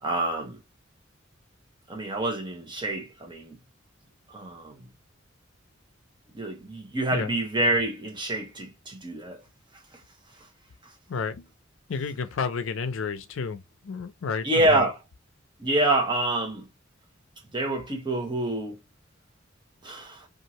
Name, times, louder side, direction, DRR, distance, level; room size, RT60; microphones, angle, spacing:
voice 1, 0.0-0.6 1.9-3.6 4.3-4.8 6.3-9.4 14.4-15.0 15.6-16.7 17.5-18.8 19.8-20.3, right 1 dB, 25° right, 0.8 m, -27 dB
voice 2, 11.1-11.5 11.9-14.9, left 5 dB, 80° left, 0.5 m, -31 dB
2.7 x 2.4 x 2.9 m
head